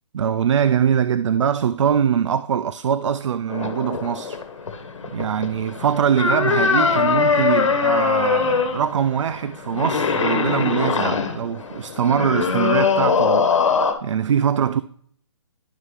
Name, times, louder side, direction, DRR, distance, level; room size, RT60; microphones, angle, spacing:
voice 1, 0.1-4.4 5.0-14.8, right 8 dB, 80° right, 0.4 m, -22 dB
sound 1, 3.5-13.9, left 5 dB, 85° left, 1.3 m, -22 dB
11.0 x 5.5 x 3.2 m
hypercardioid pair, 165°, 15 cm